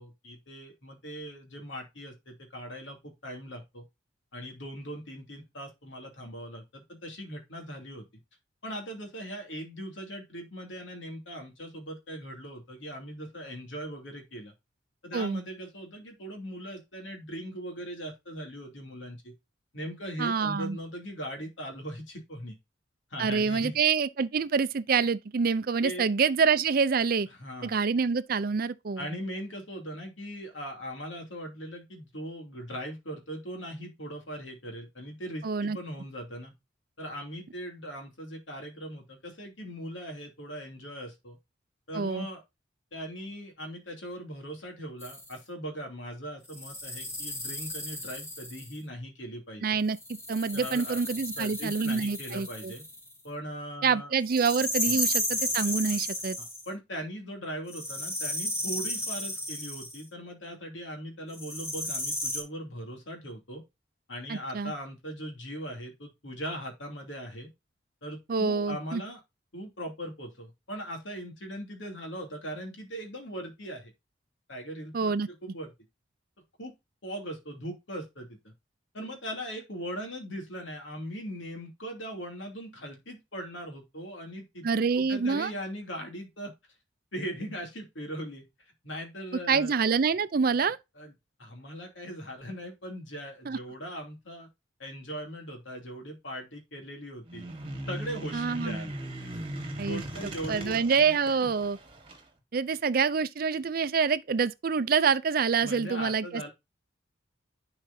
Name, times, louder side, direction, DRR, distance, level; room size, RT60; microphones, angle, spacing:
voice 1, 0.0-3.8 4.3-8.1 8.6-14.5 15.0-19.3 19.7-22.6 23.1-23.8 25.8-26.1 27.4-27.8 29.0-36.5 37.0-41.4 41.9-42.4 42.9-49.8 50.5-51.0 51.4-52.8 53.2-54.1 54.8-55.0 56.4-63.6 64.1-67.5 68.0-69.2 69.5-73.9 74.5-75.7 76.6-76.7 77.0-78.5 78.9-86.5 87.1-89.8 91.0-91.1 91.4-94.5 94.8-97.5 97.9-99.0 99.9-101.2 105.6-106.5, equal, 75° left, 2.7 m, -40 dB
voice 2, 20.2-20.8 23.2-27.3 27.6-29.1 35.4-35.8 41.9-42.3 49.6-50.0 50.3-52.7 53.8-56.4 64.3-64.7 68.3-69.0 74.9-75.3 84.6-85.5 89.5-90.8 93.5-93.6 98.3-98.8 99.8-100.0 100.5-101.8 102.5-106.5, right 5 dB, 50° right, 0.4 m, -26 dB
sound 1, 45.0-45.3 46.5-48.8 49.9-53.1 54.3-56.7 57.7-60.0 61.3-62.4, left 1 dB, 15° left, 1.5 m, -33 dB
sound 2, 97.3-102.2, right 1 dB, 30° right, 1.4 m, -39 dB
10.5 x 4.9 x 2.7 m
head